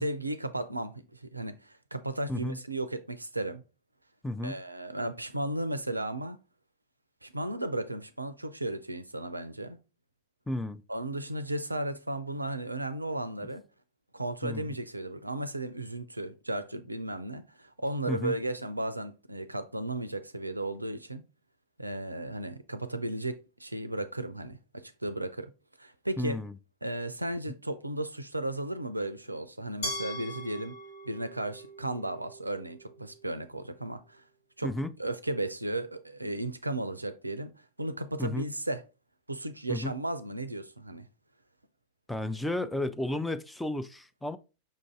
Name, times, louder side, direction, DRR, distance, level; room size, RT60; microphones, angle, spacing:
voice 1, 0.0-3.6 4.4-6.4 7.2-9.8 10.9-13.6 14.1-21.2 21.8-25.5 25.8-26.4 26.8-30.8 31.1-34.2 34.6-34.7 35.0-37.5 37.8-38.8 39.3-41.1, right 1 dB, 85° right, 0.4 m, -35 dB
voice 2, 4.2-4.6 10.5-10.8 14.4-14.7 18.1-18.3 26.2-26.5 34.6-34.9 38.2-38.5 39.7-40.0 42.1-44.4, left 1 dB, 5° left, 0.3 m, -33 dB
Glass, 29.8-32.7, left 1 dB, 55° left, 1.3 m, -40 dB
5.3 x 2.6 x 3.4 m
figure-of-eight pair, 90°, 0 cm